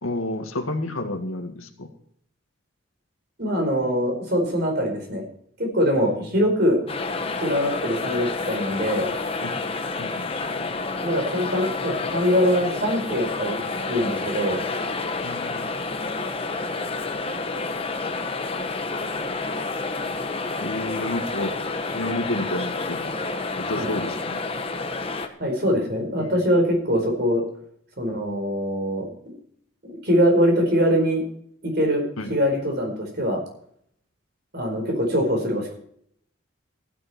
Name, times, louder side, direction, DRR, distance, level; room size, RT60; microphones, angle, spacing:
voice 1, 0.0-1.9 5.9-6.4 9.4-9.5 10.0-10.8 15.2-15.7 20.6-23.1 23.6-24.4 26.2-26.4 32.2-32.3, left 1 dB, 85° left, 6 dB, 2.0 m, -31 dB
voice 2, 3.4-5.2 5.6-6.8 7.4-9.1 11.0-13.6 13.9-14.6 23.8-23.9 25.4-27.4 28.0-29.3 30.0-31.2 31.6-32.0 32.3-33.4 34.5-35.7, equal, 50° right, 3 dB, 4.6 m, -23 dB
sound 1, 6.9-25.3, left 3 dB, 25° left, 1.2 m, -29 dB
15.0 x 10.0 x 4.4 m, 0.66 s
head